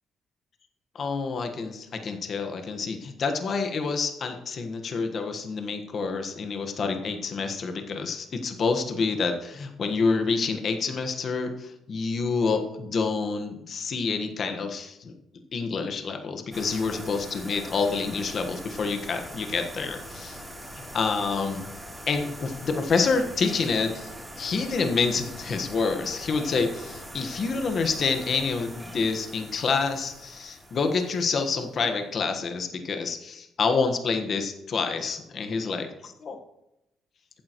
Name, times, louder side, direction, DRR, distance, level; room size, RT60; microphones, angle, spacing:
voice 1, 0.9-15.1 15.5-20.4 20.9-21.7 22.1-36.4, left 4 dB, 55° left, 5 dB, 1.4 m, -28 dB
sound 1, 16.5-31.9, equal, ahead, 3.2 m, -42 dB
14.5 x 9.1 x 3.1 m, 0.87 s
cardioid pair, 90°, 0 cm